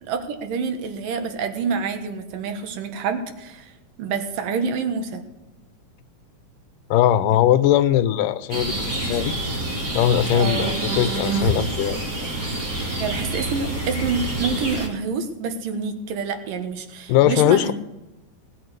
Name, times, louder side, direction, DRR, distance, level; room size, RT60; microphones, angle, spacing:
voice 1, 0.0-3.7 4.0-5.2 10.3-10.8 13.0-17.7, right 5 dB, 80° right, 6 dB, 3.1 m, -27 dB
voice 2, 6.9-9.4 9.9-12.0 17.1-17.7, left 11 dB, 80° left, 14 dB, 2.3 m, -20 dB
sound 1, 8.5-14.9, right 2 dB, 30° right, 2.7 m, -27 dB
19.0 x 8.6 x 6.7 m, 0.99 s
omnidirectional pair, 3.8 m